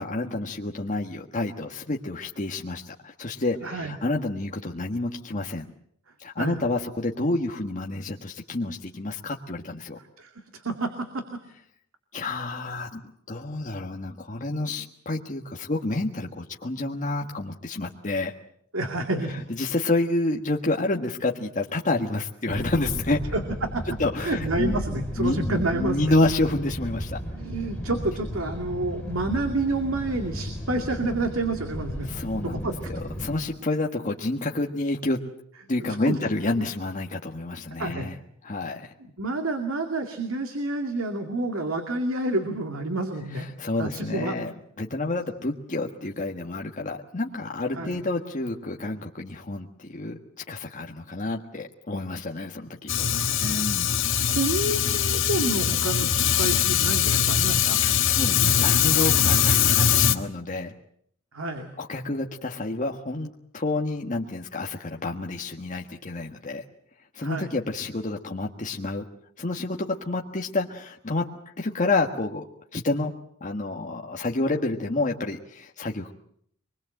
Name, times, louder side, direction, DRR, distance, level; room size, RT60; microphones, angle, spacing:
voice 1, 0.0-5.7 6.2-10.0 12.1-13.0 13.3-18.3 19.3-23.2 24.0-24.8 25.2-27.2 32.0-35.2 35.7-38.2 38.4-38.9 43.3-44.5 44.8-50.2 50.5-52.9 53.4-54.0 57.7-60.7 61.8-66.6 67.1-69.0 69.4-71.3 71.6-72.5 72.7-73.1 73.4-76.1, left 2 dB, 40° left, 1 dB, 1.5 m, -29 dB
voice 2, 3.6-4.0 6.4-6.6 10.2-10.9 18.7-19.4 23.3-23.8 24.2-26.0 27.3-32.1 32.4-32.7 35.8-36.2 36.6-36.7 37.8-38.1 39.2-43.5 43.8-44.3 47.7-48.0 53.0-53.6 54.3-57.8 61.3-61.7 67.2-67.5, right 2 dB, 85° right, 5 dB, 2.4 m, -29 dB
sound 1, 22.5-33.3, equal, 5° left, 5.5 m, -34 dB
Fire, 52.9-60.1, left 8 dB, 65° left, 1.5 m, -22 dB
24.5 x 21.5 x 7.8 m, 0.68 s
head